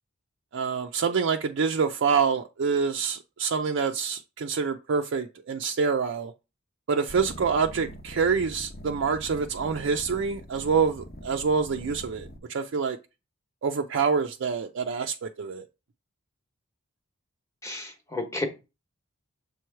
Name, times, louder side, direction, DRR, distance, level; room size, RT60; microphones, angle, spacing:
voice 1, 0.5-6.3 6.9-13.0 13.6-15.7, right 5 dB, 60° right, 0.4 m, -26 dB
sound 1, 7.1-12.4, equal, 45° left, 0.9 m, -43 dB
voice 2, 17.6-18.4, left 2 dB, 15° left, 1.0 m, -32 dB
6.8 x 3.1 x 4.5 m
head